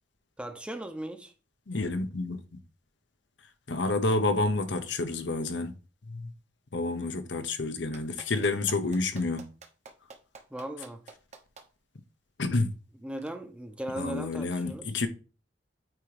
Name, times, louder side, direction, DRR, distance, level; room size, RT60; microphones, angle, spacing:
voice 1, 0.4-1.3 10.5-11.0 13.0-14.9, right 1 dB, 5° right, 0.7 m, -38 dB
voice 2, 1.7-2.4 3.7-5.7 6.1-6.3 6.7-9.4 12.4-12.7 14.0-15.1, left 2 dB, 80° left, 0.9 m, -29 dB
Clapping, 7.9-11.7 13.2-13.3, right 4 dB, 40° right, 0.9 m, -48 dB
8.9 x 3.0 x 4.8 m
head